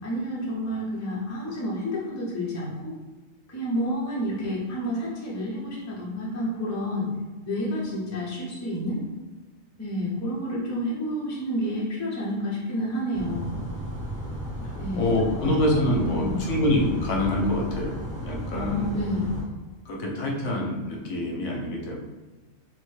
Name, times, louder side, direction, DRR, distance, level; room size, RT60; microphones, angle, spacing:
voice 1, 0.0-2.9 3.5-7.1 7.4-9.0 9.8-13.6 14.8-15.1 15.4-15.5 15.8-16.6 18.5-19.4, equal, 20° left, -5 dB, 0.4 m, -30 dB
sound 1, 13.1-19.4, equal, 80° right, 1.3 m, -34 dB
voice 2, 14.9-18.0 18.2-19.2 19.9-22.0, left 1 dB, 70° left, -1 dB, 0.9 m, -26 dB
3.1 x 2.1 x 3.1 m, 1.3 s
omnidirectional pair, 1.4 m